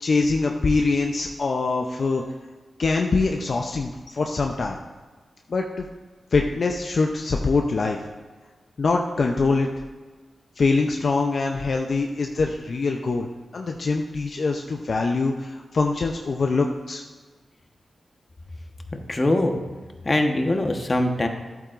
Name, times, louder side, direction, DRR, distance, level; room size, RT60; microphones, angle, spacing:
voice 1, 0.0-2.2 2.8-4.8 5.5-5.9 6.3-8.0 8.8-9.7 10.6-17.0, left 3 dB, 65° left, 2 dB, 0.6 m, -23 dB
voice 2, 19.1-19.6 20.0-21.3, left 1 dB, 40° left, 4 dB, 1.2 m, -22 dB
11.0 x 8.5 x 2.5 m, 1.4 s
cardioid pair, 45°, 0 cm